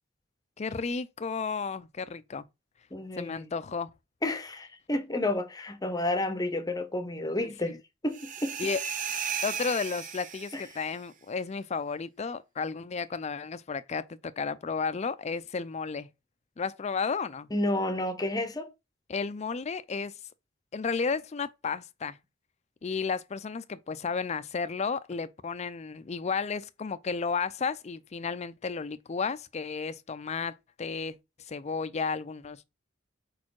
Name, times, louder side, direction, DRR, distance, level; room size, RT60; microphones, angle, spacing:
voice 1, 0.6-2.4 3.2-3.9 7.4-7.8 8.6-8.8 9.4-16.1 16.6-17.5 19.1-20.1 20.7-22.2 22.8-31.2 31.5-32.6, left 5 dB, 35° left, 0.4 m, -33 dB
voice 2, 2.9-3.5 4.2-7.8 8.0-8.6 10.5-10.6 17.5-18.7, left 1 dB, 20° left, 0.8 m, -30 dB
sound 1, 8.1-10.8, right 7 dB, 45° right, 0.7 m, -35 dB
4.7 x 4.3 x 4.6 m
head